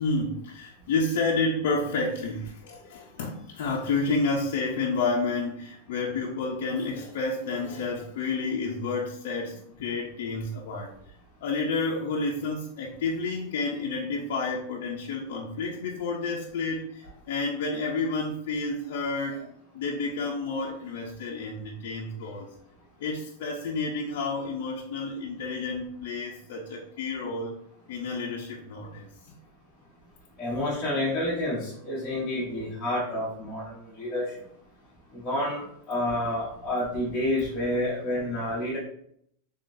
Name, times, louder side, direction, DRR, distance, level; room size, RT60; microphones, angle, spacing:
voice 1, 0.0-10.9 11.4-22.5 23.0-27.5 27.9-29.4, left 3 dB, 55° left, -2 dB, 0.5 m, -30 dB
voice 2, 30.4-34.3 35.1-38.8, left 1 dB, 10° left, -11 dB, 0.9 m, -29 dB
3.7 x 3.4 x 2.5 m, 0.69 s
supercardioid pair, 180°, 0 cm